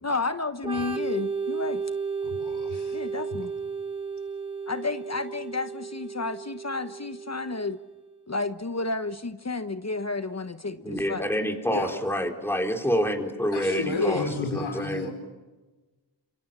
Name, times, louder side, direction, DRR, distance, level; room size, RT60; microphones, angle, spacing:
voice 1, 0.0-1.8 2.9-3.5 4.7-7.8 8.3-11.3 13.9-14.3, left 3 dB, 35° left, 10 dB, 1.2 m, -31 dB
Organ, 0.6-8.1, right 5 dB, 10° right, 2.9 m, -33 dB
voice 2, 2.2-3.0 10.9-11.0 11.7-12.0 13.5-15.1, left 3 dB, 75° left, 5 dB, 4.9 m, -33 dB
voice 3, 10.8-14.2 14.5-15.1, equal, 5° left, 3 dB, 4.0 m, -27 dB
29.0 x 27.0 x 7.5 m, 1.2 s
wide cardioid pair, 70°, 47 cm